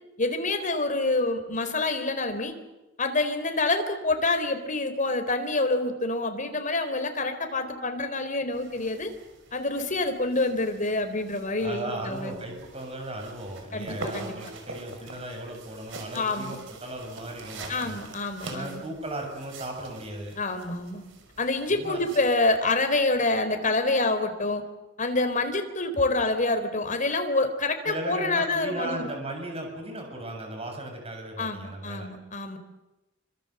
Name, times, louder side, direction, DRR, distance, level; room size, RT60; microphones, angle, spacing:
voice 1, 0.2-2.5 3.0-9.1 9.5-12.4 13.7-14.4 16.1-16.6 17.7-18.8 20.4-21.0 21.4-24.6 25.0-29.0 31.4-32.6, left 2 dB, 40° left, 7 dB, 3.8 m, -27 dB
sound 1, 8.5-22.4, right 3 dB, 65° right, 5.6 m, -45 dB
voice 2, 11.5-18.0 18.4-20.4 21.7-22.0 27.9-32.1, right 1 dB, 30° right, 2 dB, 7.1 m, -36 dB
27.0 x 25.5 x 7.9 m, 1.0 s
head